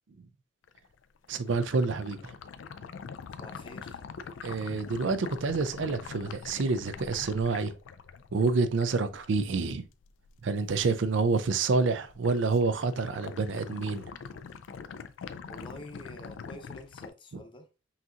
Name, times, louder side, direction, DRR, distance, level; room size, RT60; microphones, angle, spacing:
sound 1, 0.6-11.0 11.3-11.8 12.1-17.1, left 6 dB, 80° left, 0.4 m, -44 dB
voice 1, 1.3-2.3 4.4-7.7 8.3-9.9 10.4-14.1, right 4 dB, 75° right, 0.5 m, -28 dB
voice 2, 3.4-4.0 15.4-17.7, left 1 dB, 25° left, 0.7 m, -47 dB
5.7 x 2.8 x 2.5 m
head